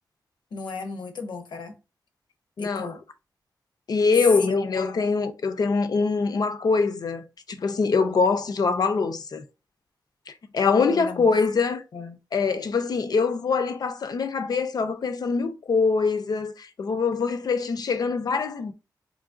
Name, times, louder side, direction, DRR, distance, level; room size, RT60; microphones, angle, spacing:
voice 1, 0.5-1.8 2.6-3.0 4.4-4.7 10.9-11.3 11.9-12.2, left 3 dB, 85° left, 0.8 m, -34 dB
voice 2, 2.6-2.9 3.9-9.4 10.3-11.8 12.3-18.7, left 4 dB, 60° left, 0.5 m, -24 dB
3.8 x 3.1 x 2.5 m
wide cardioid pair, 90°, 8 cm